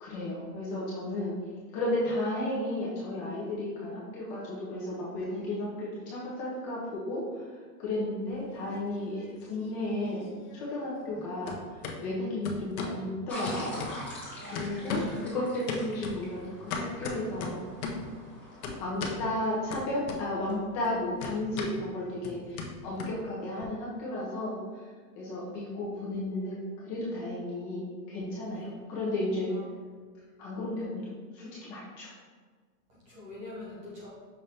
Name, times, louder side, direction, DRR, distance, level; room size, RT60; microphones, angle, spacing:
voice 1, 0.0-1.4 1.7-13.8 14.5-17.6 18.8-24.6 25.1-26.6 26.8-29.5 30.4-32.1, left 1 dB, 25° left, -7 dB, 0.6 m, -33 dB
sound 1, 8.3-9.3 9.6-11.2 11.5-12.0 12.5-13.0 13.5-14.3 14.6-15.2 15.7-18.1 18.6-19.2 19.7-20.5 20.8-23.7, left 4 dB, 60° left, 0.8 m, -37 dB
sound 2, 13.3-18.7, equal, 5° left, 1.2 m, -43 dB
voice 2, 14.4-15.1 28.5-28.7 29.5-29.6 32.9-34.1, left 2 dB, 15° right, -7 dB, 0.5 m, -45 dB
5.8 x 2.6 x 3.3 m, 1.5 s
supercardioid pair, 160°, 49 cm